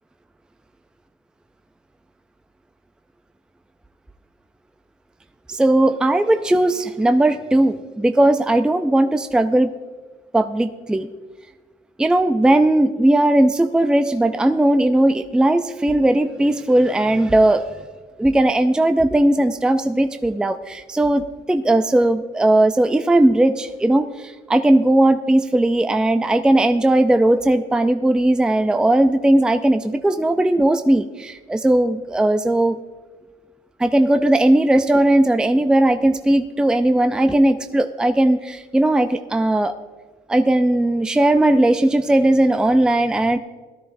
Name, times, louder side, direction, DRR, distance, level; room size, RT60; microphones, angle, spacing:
voice 1, 5.5-9.7 10.3-11.1 12.0-17.6 18.2-32.8 33.8-39.8 40.3-43.4, right 1 dB, 5° right, 8 dB, 0.4 m, -17 dB
18.0 x 13.0 x 2.6 m, 1.3 s
cardioid pair, 110°, 17 cm